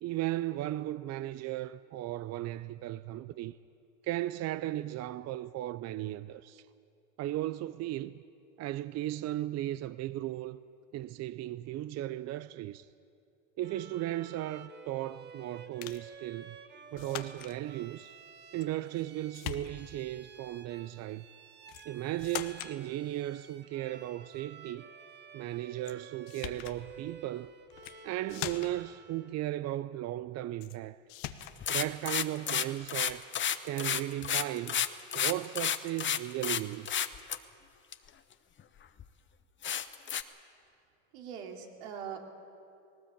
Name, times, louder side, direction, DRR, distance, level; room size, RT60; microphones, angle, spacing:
voice 1, 0.0-3.6 4.0-6.7 7.2-8.2 8.6-10.6 10.9-12.9 13.6-16.6 16.9-18.1 18.5-21.2 21.9-24.9 25.3-27.5 28.0-31.0 31.7-33.2 33.6-34.9 35.1-37.1, right 14 dB, 45° right, 0.5 m, -36 dB
Bowed string instrument, 13.6-29.4, right 5 dB, 30° right, 1.4 m, -52 dB
sound 1, 15.8-16.1 17.0-17.6 18.6-19.1 19.3-20.0 21.7-21.9 22.2-22.8 25.8-26.0 26.3-26.8 27.7-28.0 28.3-28.9 30.6-30.8 31.1-31.6, left 13 dB, 80° left, 1.2 m, -41 dB
sound 2, 31.4-36.6 36.8-37.4 37.9-38.0 38.6-38.7 39.0-39.1 39.6-40.2, left 9 dB, 30° left, 0.9 m, -31 dB
voice 2, 41.1-42.2, right 8 dB, 80° right, 2.7 m, -41 dB
18.5 x 18.5 x 8.5 m
supercardioid pair, 95°, 37 cm